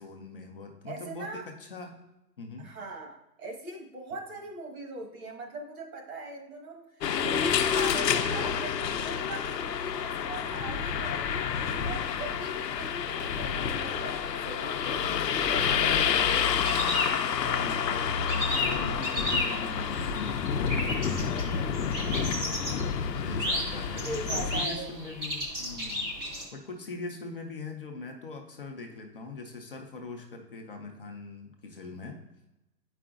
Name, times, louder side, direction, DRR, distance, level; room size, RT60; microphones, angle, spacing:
voice 1, 0.0-2.0 2.4-2.7 17.4-24.2 24.4-26.1 26.5-32.2, left 3 dB, 35° left, 2 dB, 0.5 m, -42 dB
voice 2, 0.9-1.5 2.6-11.5 11.8-16.2 24.0-25.2, right 2 dB, 60° right, 1 dB, 1.3 m, -41 dB
sound 1, 7.0-24.7, left 7 dB, 80° left, 0.6 m, -29 dB
sound 2, 16.6-17.8 18.1-26.4, left 1 dB, 15° right, 0.6 m, -33 dB
8.1 x 4.9 x 2.4 m, 0.94 s
hypercardioid pair, 140°, 49 cm